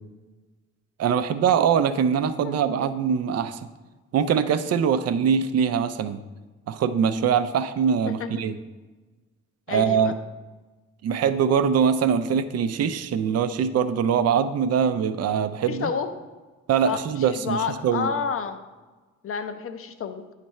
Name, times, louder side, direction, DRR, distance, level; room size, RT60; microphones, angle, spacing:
voice 1, 1.0-3.6 4.1-6.2 6.7-8.5 9.7-10.1 11.0-15.9 16.7-18.1, right 7 dB, 55° right, 11 dB, 0.5 m, -23 dB
voice 2, 2.4-2.9 8.1-8.3 9.7-10.1 15.7-16.1 16.9-18.6 19.2-20.2, left 6 dB, 45° left, 8 dB, 0.6 m, -30 dB
9.1 x 3.3 x 4.3 m, 1.2 s
cardioid pair, 90°, 30 cm